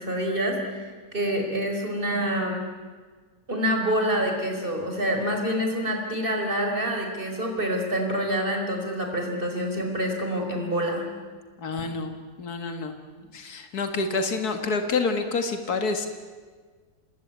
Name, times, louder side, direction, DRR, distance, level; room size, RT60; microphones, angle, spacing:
voice 1, 0.0-2.6 3.5-11.1, equal, 35° right, 2 dB, 5.0 m, -27 dB
voice 2, 11.6-13.0 13.3-16.1, left 4 dB, 85° left, 6 dB, 2.3 m, -28 dB
27.0 x 21.0 x 9.4 m, 1.5 s
omnidirectional pair, 1.6 m